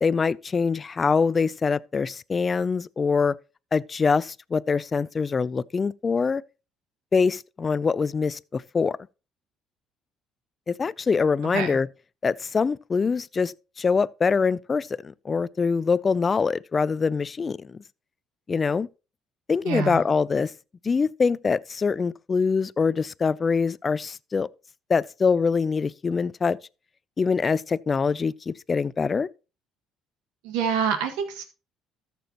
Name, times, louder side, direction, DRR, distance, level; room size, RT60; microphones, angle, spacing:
voice 1, 0.0-3.4 3.7-6.4 7.1-9.0 10.7-11.9 12.2-17.8 18.5-18.9 19.5-20.5 20.8-24.5 24.9-26.6 27.2-29.3, left 5 dB, 30° left, 0.3 m, -24 dB
voice 2, 19.6-20.0 30.4-31.4, right 6 dB, 90° right, 1.7 m, -26 dB
13.5 x 6.9 x 2.9 m
supercardioid pair, 85°, 0 cm